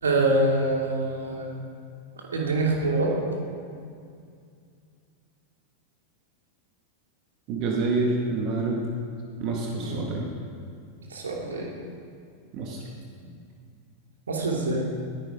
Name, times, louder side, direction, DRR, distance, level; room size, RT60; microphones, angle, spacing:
voice 1, 0.0-1.5 2.2-3.1 9.7-10.1 11.1-11.7 14.3-14.8, right 2 dB, 70° right, -1 dB, 2.7 m, -25 dB
voice 2, 7.5-8.8 9.4-10.3 12.5-12.8, right 3 dB, 40° right, -1 dB, 1.9 m, -27 dB
20.0 x 10.5 x 5.1 m, 2.3 s
figure-of-eight pair, 90°, 0 cm